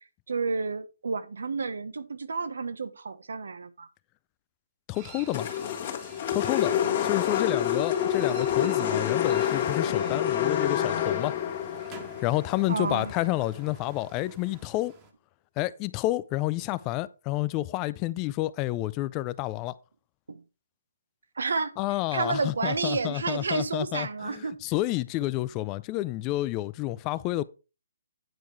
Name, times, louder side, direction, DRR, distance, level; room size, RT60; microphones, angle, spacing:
voice 1, 0.3-3.9 12.7-13.1 20.3-20.4 21.4-21.7 22.1-24.6, right 4 dB, 80° right, 1.0 m, -30 dB
voice 2, 4.9-5.5 6.3-6.7 7.0-11.3 12.2-14.9 15.6-19.7 21.8-27.4, left 17 dB, 25° left, 0.4 m, -29 dB
sound 1, 4.9-15.1, right 4 dB, 20° right, 1.5 m, -49 dB
sound 2, 5.3-13.6, left 9 dB, 40° left, 1.7 m, -28 dB
9.3 x 4.7 x 4.6 m
hypercardioid pair, 155°, 0 cm